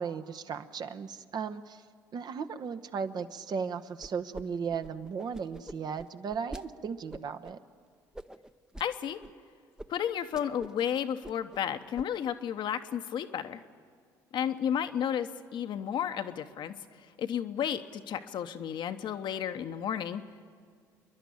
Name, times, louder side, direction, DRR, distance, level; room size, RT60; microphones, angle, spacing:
voice 1, 0.0-1.8 2.1-7.6, right 6 dB, 50° right, 9 dB, 1.0 m, -36 dB
sound 1, 4.0-4.4 4.7-6.6 7.1-7.5 8.1-8.9 9.2-9.3 9.8-9.9 10.2-10.8 11.1-11.6 12.0-12.3, right 1 dB, 5° right, 0.7 m, -45 dB
voice 2, 8.8-9.2 9.9-13.6 14.3-16.7 17.2-20.2, left 9 dB, 55° left, 8 dB, 1.0 m, -32 dB
28.0 x 11.5 x 8.6 m, 2.1 s
hypercardioid pair, 55°, 9 cm